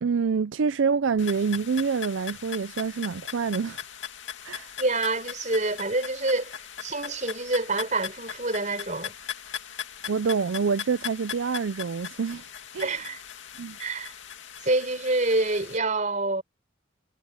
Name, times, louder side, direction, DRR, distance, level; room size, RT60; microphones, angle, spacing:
voice 1, 0.0-3.8 4.4-4.7 10.1-12.5 12.7-13.0 13.6-13.8, right 5 dB, 75° right, 0.5 m, -26 dB
sound 1, 1.2-15.8, left 9 dB, 75° left, 2.4 m, -39 dB
voice 2, 4.8-6.5 6.8-9.2 12.8-13.2 13.8-14.1 14.6-16.4, right 2 dB, 40° right, 5.2 m, -27 dB
head